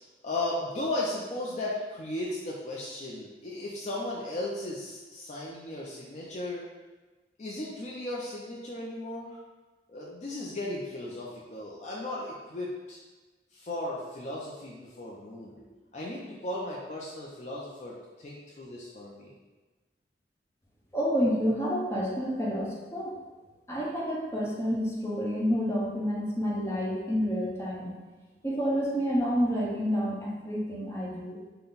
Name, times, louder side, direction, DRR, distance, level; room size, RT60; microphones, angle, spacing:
voice 1, 0.2-6.6 7.4-9.4 9.9-13.0 13.5-19.3, left 1 dB, 40° left, -4 dB, 0.5 m, -36 dB
voice 2, 20.9-23.1 23.7-27.9 28.4-31.4, equal, 15° left, -5 dB, 0.9 m, -29 dB
5.7 x 2.2 x 3.9 m, 1.3 s
head